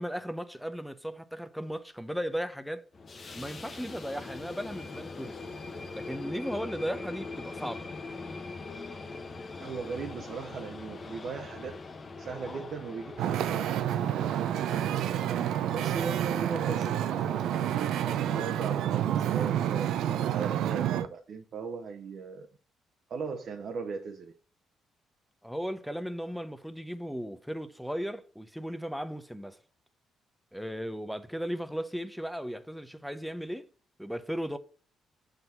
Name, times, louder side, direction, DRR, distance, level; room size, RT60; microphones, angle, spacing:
voice 1, 0.0-2.8 3.3-5.4 5.9-7.9 25.4-29.6 30.5-33.7 34.0-34.6, equal, ahead, 0.7 m, -36 dB
sound 1, 2.9-18.5, left 3 dB, 35° left, 0.9 m, -42 dB
voice 2, 9.6-11.7 12.2-13.7 14.1-14.9 15.7-17.4 18.0-22.5 23.1-24.3, right 5 dB, 60° right, 0.8 m, -38 dB
Wind / Ocean, 13.2-21.1, right 11 dB, 85° right, 0.5 m, -29 dB
7.4 x 4.0 x 4.4 m
cardioid pair, 90°, 0 cm